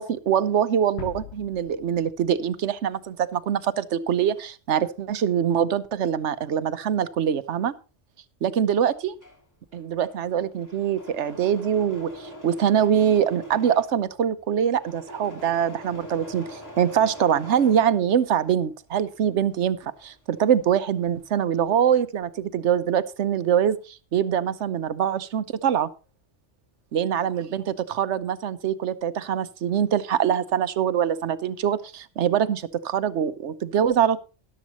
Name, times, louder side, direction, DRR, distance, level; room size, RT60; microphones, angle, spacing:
voice 1, 0.0-7.7 8.4-9.1 9.7-25.9 26.9-34.2, right 9 dB, 75° right, 14 dB, 1.1 m, -24 dB
sound 1, 1.0-3.8, left 8 dB, 65° left, 1.2 m, -42 dB
Engine / Mechanisms, 8.9-18.6 18.9-21.3 21.5-22.2, equal, 15° left, 3.0 m, -44 dB
13.5 x 11.5 x 2.9 m, 0.32 s
omnidirectional pair, 1.2 m